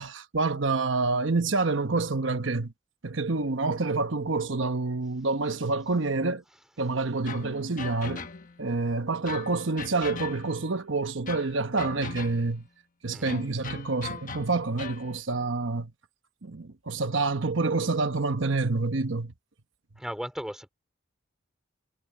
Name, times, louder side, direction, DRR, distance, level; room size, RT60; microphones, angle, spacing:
voice 1, 0.0-2.7 3.0-6.4 6.8-8.2 8.6-12.6 13.0-15.9 16.4-19.3, right 3 dB, 70° right, 1.1 m, -27 dB
sound 1, 7.3-8.7 9.3-10.7 11.3-12.6 13.3-15.1, left 5 dB, 45° left, 1.3 m, -40 dB
voice 2, 20.0-20.7, equal, 5° right, 3.5 m, -36 dB
head